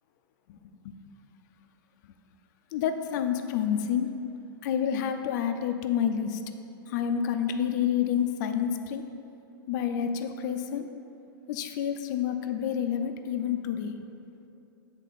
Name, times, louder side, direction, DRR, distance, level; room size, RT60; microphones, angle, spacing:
voice 1, 0.5-1.0 2.7-4.1 4.6-6.4 6.9-9.0 9.7-10.9 11.5-13.9, left 8 dB, 50° left, 7 dB, 0.5 m, -29 dB
8.2 x 3.7 x 4.1 m, 2.7 s
hypercardioid pair, 120°, 12 cm